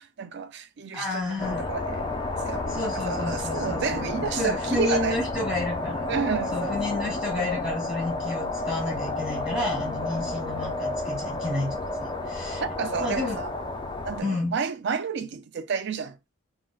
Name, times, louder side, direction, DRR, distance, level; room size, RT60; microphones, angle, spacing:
voice 1, 0.0-2.0 2.4-5.2 6.1-7.0 12.6-13.5 14.0-16.3, right 6 dB, 55° right, 0.4 m, -31 dB
voice 2, 0.9-1.6 2.7-6.0 6.5-12.6 13.0-13.4 14.2-14.5, left 2 dB, 5° right, 1.7 m, -31 dB
sound 1, 1.4-14.2, left 2 dB, 20° left, 0.3 m, -31 dB
3.6 x 2.1 x 2.2 m
head